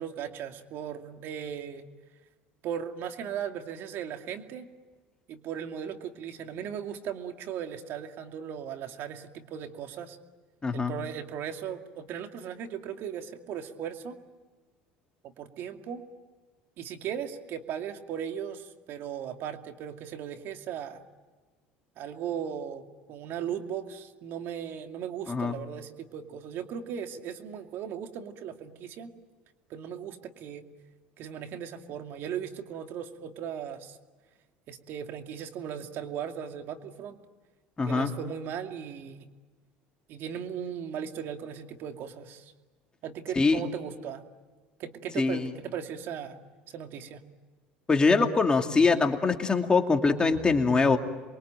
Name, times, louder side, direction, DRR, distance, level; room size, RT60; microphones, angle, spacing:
voice 1, 0.0-1.8 2.6-4.7 5.3-10.2 10.7-14.2 15.4-16.0 16.8-21.0 22.0-22.8 23.1-29.1 29.7-30.7 31.2-34.0 34.7-37.2 37.9-39.3 40.1-42.5 43.0-44.3 44.8-46.4 46.7-47.2, right 8 dB, 60° right, 5 dB, 2.5 m, -37 dB
voice 2, 10.6-10.9 25.3-25.6 37.8-38.1 43.4-43.6 45.2-45.5 47.9-51.0, left 4 dB, 20° left, 4 dB, 2.6 m, -23 dB
28.0 x 23.0 x 9.0 m, 1.3 s
supercardioid pair, 90°, 4 cm